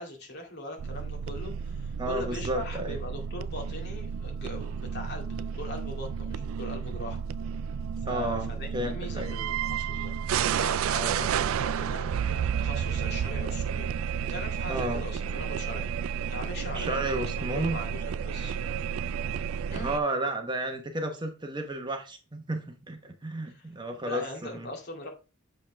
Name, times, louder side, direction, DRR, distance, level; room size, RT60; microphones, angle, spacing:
voice 1, 0.0-7.2 8.1-13.9 14.2-18.6 19.7-19.9 23.4-23.7 24.1-25.1, left 1 dB, 50° left, 2.3 m, -41 dB
sound 1, 0.8-20.0, right 7 dB, 70° right, 0.3 m, -31 dB
voice 2, 2.0-3.0 8.0-9.3 10.9-11.3 14.7-15.0 16.7-17.8 19.7-24.7, right 1 dB, 20° right, 0.9 m, -32 dB
7.4 x 5.5 x 3.3 m
head